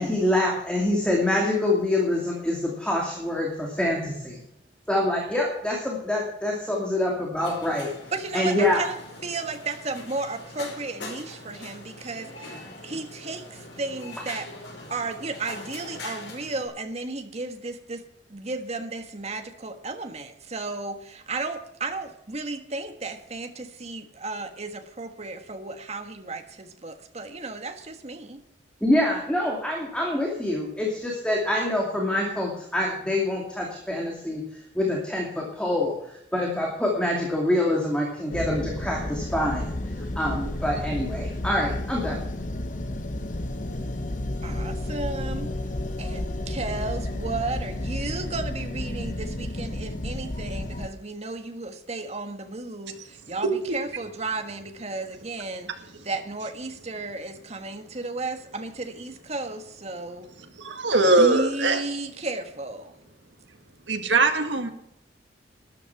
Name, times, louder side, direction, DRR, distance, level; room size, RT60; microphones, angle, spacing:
voice 1, 0.0-4.4 4.9-7.9 8.3-8.8 28.8-39.7 40.2-42.2, left 1 dB, 5° left, 2.5 m, -26 dB
sound 1, 7.4-16.7, left 2 dB, 80° left, 5.0 m, -42 dB
voice 2, 8.1-9.0 9.2-14.5 14.9-18.0 18.3-28.4 44.4-45.5 46.0-55.7 56.0-60.3 61.2-63.0, right 3 dB, 35° right, 1.5 m, -34 dB
sound 2, 38.3-50.9, left 1 dB, 45° left, 1.1 m, -31 dB
voice 3, 60.6-61.8 63.9-64.7, right 3 dB, 80° right, 1.8 m, -21 dB
13.0 x 10.5 x 5.9 m
head